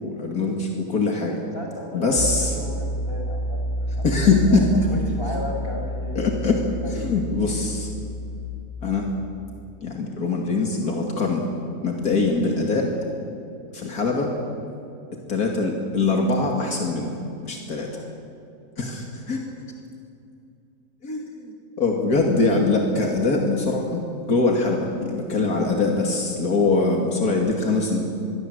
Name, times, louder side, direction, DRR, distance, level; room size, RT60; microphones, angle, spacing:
voice 1, 0.0-1.3 1.9-2.6 4.0-4.7 6.1-6.7 6.9-7.9 8.8-9.1 9.8-11.5 11.8-12.9 13.7-14.3 15.3-18.0 18.8-19.4 21.0-24.0 24.3-28.0, left 3 dB, 80° left, 1 dB, 3.0 m, -23 dB
voice 2, 1.5-4.1 4.5-6.2 6.8-7.1, left 1 dB, 40° left, 0 dB, 5.9 m, -36 dB
Piano, 2.2-8.4, equal, 60° right, 5.6 m, -29 dB
26.0 x 22.5 x 8.1 m, 2.5 s
omnidirectional pair, 1.6 m